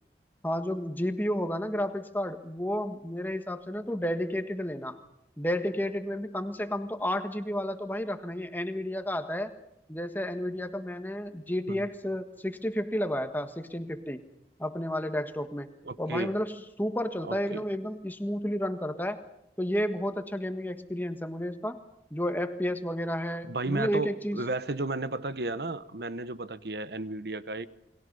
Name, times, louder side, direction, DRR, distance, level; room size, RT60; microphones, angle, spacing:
voice 1, 0.4-5.0 5.4-9.5 9.9-14.2 14.6-15.7 16.0-19.2 19.6-21.8 22.1-24.4, equal, 10° left, 8 dB, 1.5 m, -31 dB
voice 2, 15.9-16.3 17.3-17.6 23.4-27.7, right 2 dB, 65° right, 14 dB, 1.1 m, -33 dB
29.0 x 22.0 x 5.5 m, 0.81 s
head